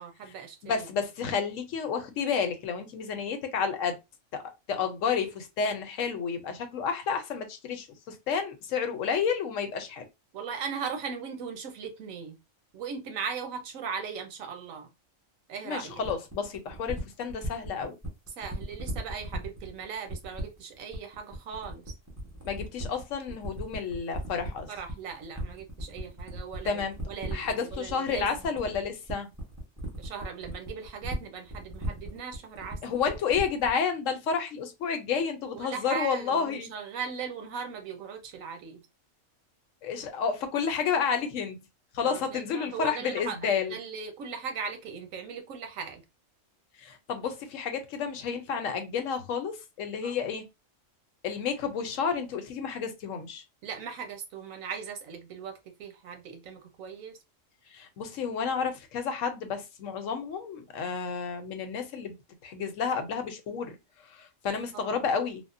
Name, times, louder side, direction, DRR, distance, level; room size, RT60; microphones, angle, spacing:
voice 1, 0.0-0.9 10.3-12.4 12.7-14.9 15.5-16.0 18.4-21.8 24.7-28.3 29.9-32.8 35.5-38.8 42.0-43.4 43.7-46.0 50.0-50.1 53.6-57.1 64.7-65.0, right 6 dB, 85° right, 1.1 m, -38 dB
voice 2, 0.6-4.0 4.3-4.4 4.7-10.0 15.6-18.0 22.4-24.7 26.7-27.0 27.3-29.3 32.8-36.7 39.8-41.6 41.9-43.7 46.8-50.5 51.2-53.4 57.7-62.2 62.4-63.8 64.1-65.4, left 6 dB, 80° left, 1.0 m, -31 dB
sound 1, 16.0-33.8, right 1 dB, 15° right, 0.8 m, -37 dB
3.5 x 2.1 x 2.5 m
omnidirectional pair, 1.3 m